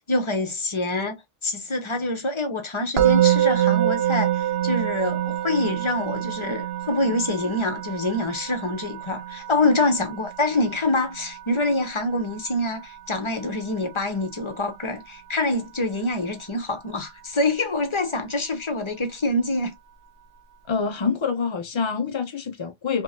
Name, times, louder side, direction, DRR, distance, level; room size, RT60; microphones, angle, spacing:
voice 1, 0.1-19.7, left 2 dB, 30° left, 0.7 m, -26 dB
Musical instrument, 3.0-14.1, right 12 dB, 60° right, 0.9 m, -26 dB
voice 2, 20.7-23.0, left 5 dB, 50° left, 0.3 m, -26 dB
3.2 x 3.0 x 2.7 m
omnidirectional pair, 1.2 m